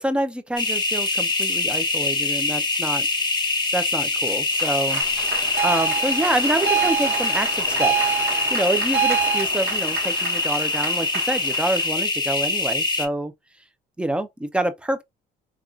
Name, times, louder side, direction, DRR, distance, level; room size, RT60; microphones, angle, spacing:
voice 1, 0.0-3.1 3.7-5.0 5.6-7.9 8.5-13.3 14.0-15.0, right 1 dB, 5° right, 0.4 m, -27 dB
sound 1, 0.6-13.1, left 3 dB, 25° left, 0.7 m, -24 dB
Cheering / Applause, 4.2-11.9, right 5 dB, 65° right, 1.0 m, -34 dB
sound 2, 5.6-9.4, right 8 dB, 90° right, 0.7 m, -25 dB
3.5 x 2.3 x 2.3 m
cardioid pair, 110°, 17 cm